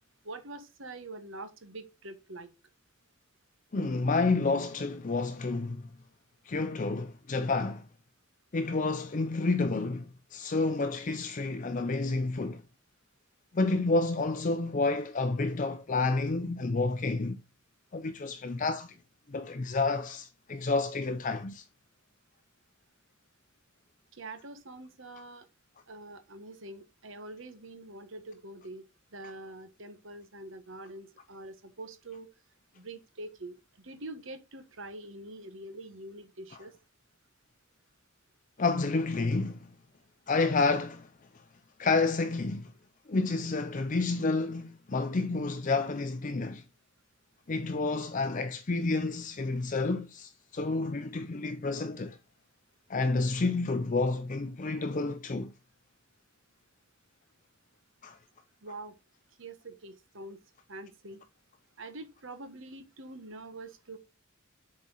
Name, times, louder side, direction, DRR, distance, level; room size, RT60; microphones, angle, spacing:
voice 1, 0.2-2.5 24.1-25.5 25.9-28.8 29.1-32.3 32.7-33.5 33.8-36.7 58.6-58.9 59.4-60.4 60.7-61.2 61.8-64.0, right 2 dB, 65° right, 1.2 m, -45 dB
voice 2, 3.7-5.8 6.5-7.9 8.5-12.6 13.5-17.4 17.9-18.9 19.3-21.6 38.6-39.7 40.3-41.1 41.8-42.7 43.1-46.6 47.5-52.2 52.9-55.5 58.0-58.2, left 3 dB, 40° left, 0.5 m, -29 dB
7.3 x 4.4 x 3.9 m
head